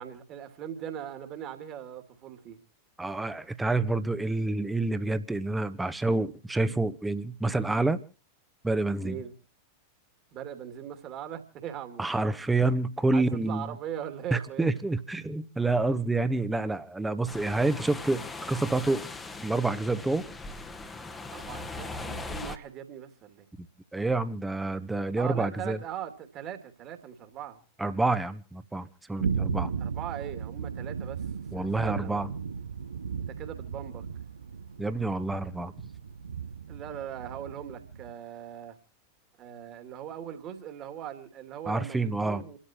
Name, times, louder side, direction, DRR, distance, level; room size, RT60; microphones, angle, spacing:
voice 1, 0.0-2.6 9.0-9.3 10.3-12.1 13.1-14.7 21.3-23.5 25.2-27.6 29.8-31.3 31.5-32.2 33.3-34.1 36.7-38.8 39.4-42.6, right 9 dB, 35° right, 2.6 m, -40 dB
voice 2, 3.0-8.0 8.6-9.2 12.0-13.7 14.3-18.2 18.5-19.1 19.4-20.2 23.9-25.8 27.8-29.7 31.5-32.3 34.8-35.7 41.7-42.4, right 2 dB, 10° right, 1.2 m, -28 dB
sound 1, 17.3-22.6, left 3 dB, 15° left, 1.3 m, -40 dB
sound 2, 29.2-38.1, right 6 dB, 70° right, 0.7 m, -36 dB
29.0 x 13.0 x 3.0 m
figure-of-eight pair, 90°, 0 cm